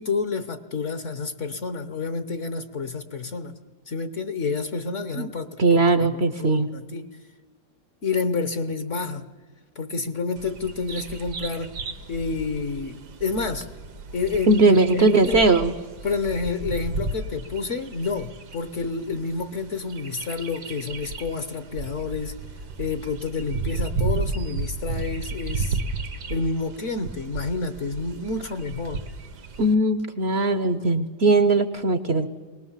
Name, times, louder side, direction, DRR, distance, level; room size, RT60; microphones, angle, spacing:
voice 1, 0.0-3.6 3.9-7.1 8.0-9.3 9.7-11.7 12.1-13.7 14.1-15.5 16.0-22.3 22.8-25.8 26.3-29.0, left 4 dB, 50° left, 10 dB, 1.2 m, -29 dB
voice 2, 5.6-6.7 14.5-15.7 29.6-32.3, right 3 dB, 50° right, 11 dB, 0.9 m, -19 dB
Bird vocalization bird call bird song, 10.4-29.7, right 3 dB, 75° right, 1.9 m, -34 dB
22.0 x 19.5 x 7.3 m, 1.3 s
omnidirectional pair, 1.8 m